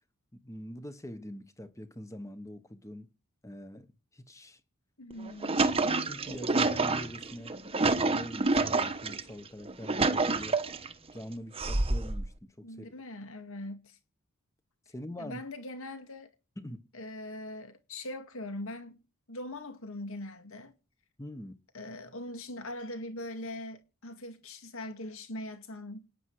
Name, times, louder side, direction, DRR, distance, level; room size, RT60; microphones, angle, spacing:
voice 1, 0.3-3.1 3.4-4.6 6.0-10.6 11.1-12.9 14.9-15.4 16.6-16.8 21.2-21.6, equal, 15° left, 1.2 m, -44 dB
voice 2, 5.0-5.7 12.6-14.0 15.2-16.3 16.9-20.7 21.7-26.1, left 1 dB, 65° left, 2.1 m, -41 dB
sound 1, 5.1-9.2 9.7-10.9 11.6-12.3, right 3 dB, 25° right, 1.0 m, -28 dB
27.5 x 9.9 x 4.8 m
head